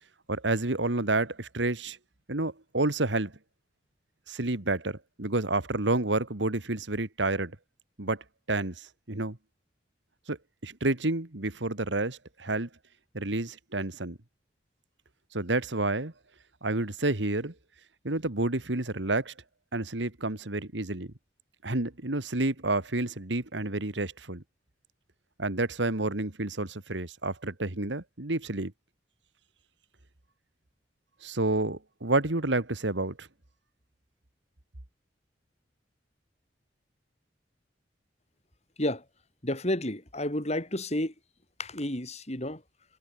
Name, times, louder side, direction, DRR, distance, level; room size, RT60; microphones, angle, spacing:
voice 1, 0.3-2.0 2.3-3.3 4.3-7.5 8.0-9.4 10.3-10.4 10.6-12.7 13.1-14.2 15.3-16.1 16.6-17.5 18.0-19.3 19.7-21.1 21.6-24.4 25.4-28.7 31.2-33.3, right 2 dB, 80° right, 2.2 m, -29 dB
voice 2, 39.4-41.1 41.6-42.6, left 1 dB, 35° left, 5.3 m, -31 dB
head